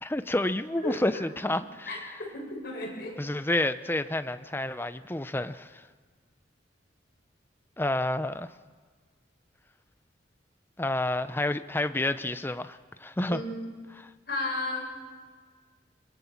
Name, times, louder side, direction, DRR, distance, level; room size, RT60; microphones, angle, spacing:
voice 1, 0.0-2.0 3.2-5.8 7.8-8.5 10.8-13.4 14.0-14.1, left 1 dB, 10° left, 11 dB, 0.6 m, -29 dB
voice 2, 1.9-3.2 13.3-13.7 14.3-14.9, left 2 dB, 55° left, -2 dB, 7.5 m, -34 dB
22.5 x 22.0 x 7.3 m, 1.5 s
head